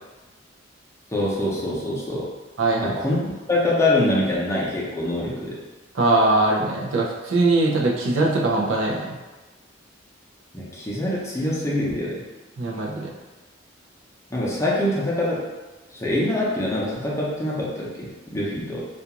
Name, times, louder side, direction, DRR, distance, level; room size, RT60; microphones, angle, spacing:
voice 1, 1.1-2.3 2.8-5.6 10.5-12.2 14.3-15.5 15.9-18.8, left 1 dB, 15° left, -6 dB, 0.6 m, -24 dB
voice 2, 2.6-2.9 5.9-9.2 12.6-13.1, right 2 dB, 85° right, -2 dB, 0.5 m, -21 dB
2.4 x 2.4 x 2.8 m, 1.2 s
head